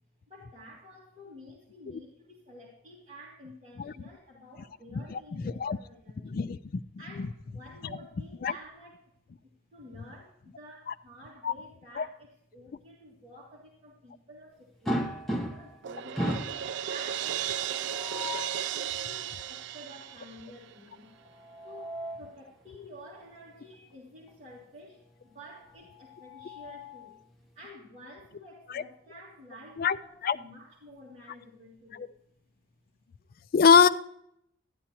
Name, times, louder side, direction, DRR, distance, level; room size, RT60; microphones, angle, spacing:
voice 1, 0.3-9.1 9.4-16.3 16.9-18.3 18.7-21.1 21.6-27.2 27.5-32.2, equal, 30° right, -6 dB, 2.0 m, -51 dB
voice 2, 5.1-5.8 6.2-6.6 8.4-8.5 11.4-11.5 12.0-12.1 28.7-28.8 29.8-30.0 30.2-30.4 32.0-32.1 33.5-33.9, left 6 dB, 50° left, 12 dB, 0.3 m, -22 dB
sound 1, 14.9-15.8 16.2-16.6 17.9-18.6 21.3-22.3 23.7-23.9 24.3-24.4 25.9-27.2, equal, ahead, 0.9 m, -35 dB
Crash cymbal, 15.8-20.8, right 10 dB, 60° right, 0.3 m, -35 dB
12.0 x 9.8 x 2.9 m, 0.75 s
head